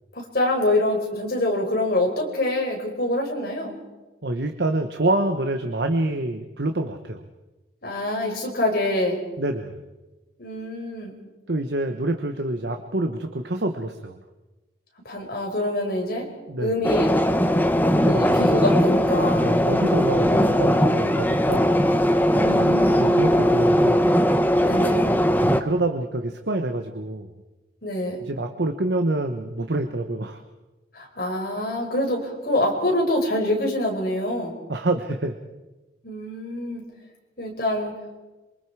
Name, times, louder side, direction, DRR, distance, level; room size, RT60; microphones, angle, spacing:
voice 1, 0.1-3.8 7.8-9.2 10.4-11.1 15.0-16.3 16.6-17.2 18.1-19.5 22.3-23.2 24.6-25.0 27.8-28.2 30.9-34.6 36.0-36.8 37.4-37.9, left 1 dB, 55° left, 1 dB, 5.0 m, -25 dB
voice 2, 4.2-7.2 9.4-9.8 11.5-14.2 16.5-16.7 18.0-18.4 19.4-21.8 22.9-24.1 25.4-27.3 28.2-30.4 34.7-35.4, right 2 dB, 65° right, 6 dB, 1.2 m, -26 dB
sound 1, 16.8-25.6, equal, 10° left, 0.9 m, -19 dB
27.5 x 24.5 x 4.9 m, 1.1 s
head